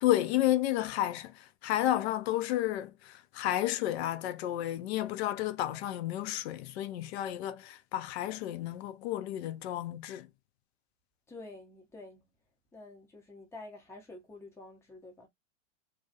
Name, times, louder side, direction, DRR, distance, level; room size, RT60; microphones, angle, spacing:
voice 1, 0.0-10.3, left 13 dB, 55° left, 0.4 m, -31 dB
voice 2, 11.3-12.2 12.7-15.3, left 2 dB, 5° left, 0.6 m, -48 dB
2.4 x 2.0 x 2.6 m
hypercardioid pair, 125°, 39 cm